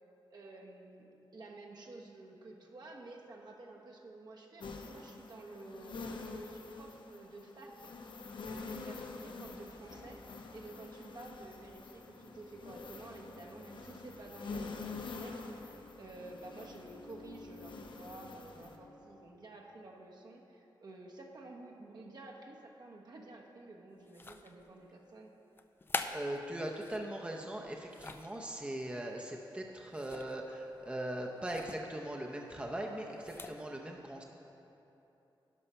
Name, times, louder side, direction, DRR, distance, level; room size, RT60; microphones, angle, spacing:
voice 1, 0.3-7.9 8.4-10.2 10.5-25.3, right 2 dB, 55° right, 0 dB, 1.0 m, -51 dB
sound 1, 4.6-18.8, left 4 dB, 70° left, 0.7 m, -47 dB
sound 2, 9.2-19.4, left 2 dB, 55° left, 1.0 m, -57 dB
sound 3, 24.1-24.7 25.6-27.1 27.6-28.4 29.9-30.4 30.7-30.9 31.5-31.8 33.1-33.6, left 3 dB, 25° left, 0.4 m, -43 dB
voice 2, 26.1-34.2, right 1 dB, 15° right, 0 dB, 0.6 m, -40 dB
11.0 x 5.5 x 5.6 m, 2.9 s
wide cardioid pair, 125°, 8 cm